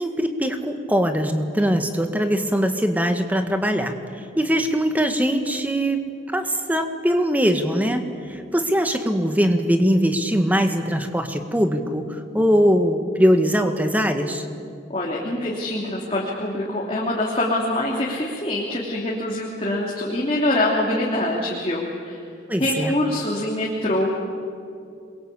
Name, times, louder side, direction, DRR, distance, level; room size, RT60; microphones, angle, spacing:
voice 1, 0.0-3.9 4.4-6.0 6.3-14.4 22.5-22.9, equal, 10° right, 7 dB, 1.7 m, -21 dB
voice 2, 14.9-22.2 22.6-24.1, left 1 dB, 30° left, -3 dB, 3.0 m, -24 dB
27.5 x 22.5 x 8.5 m, 2.4 s
head